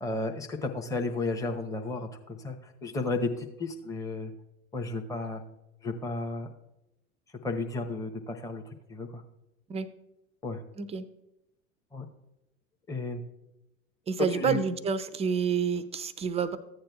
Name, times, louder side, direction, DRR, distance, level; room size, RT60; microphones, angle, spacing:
voice 1, 0.0-4.3 4.7-5.4 5.8-6.5 7.4-8.6 8.9-9.2 10.4-10.6 11.9-12.1 12.9-13.2 14.3-14.6, left 2 dB, 10° left, 3 dB, 0.8 m, -33 dB
voice 2, 14.1-16.6, right 6 dB, 15° right, 13 dB, 0.4 m, -29 dB
14.5 x 8.9 x 2.3 m, 0.91 s
hypercardioid pair, 85°, 42 cm